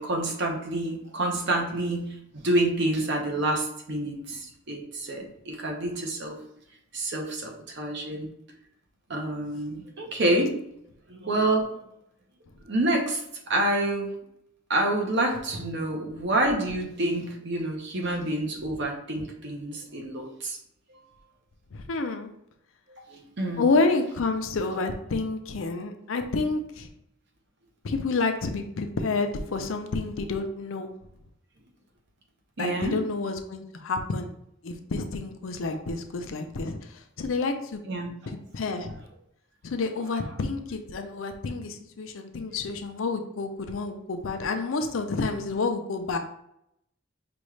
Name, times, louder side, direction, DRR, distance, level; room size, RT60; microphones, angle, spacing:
voice 1, 0.0-6.4 6.9-8.3 9.1-10.5 11.1-11.7 12.6-14.1 14.7-20.6 23.0-23.6 32.6-33.0 35.7-35.8 37.8-38.1 42.5-42.6, right 1 dB, 55° right, 1 dB, 0.8 m, -28 dB
voice 2, 21.7-22.3 23.6-26.9 27.8-30.9 32.6-34.3 34.6-37.8 38.3-39.0 39.6-46.2, left 3 dB, 65° left, 5 dB, 0.5 m, -29 dB
5.2 x 2.4 x 3.1 m, 0.77 s
head